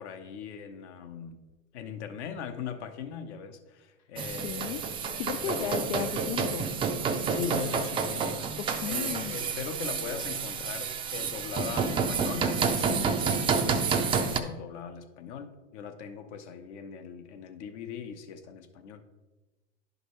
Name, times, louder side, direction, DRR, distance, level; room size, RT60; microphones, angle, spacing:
voice 1, 0.0-1.4 1.7-4.8 5.5-5.9 7.3-8.5 8.8-19.0, left 7 dB, 65° left, 8 dB, 1.0 m, -40 dB
sound 1, 4.2-14.4, right 5 dB, 15° right, 0.4 m, -29 dB
voice 2, 4.4-4.8 5.1-6.7 8.7-9.4 12.9-13.0, left 11 dB, 80° left, 9 dB, 0.5 m, -35 dB
11.0 x 5.2 x 3.1 m, 1.1 s
hypercardioid pair, 115°, 37 cm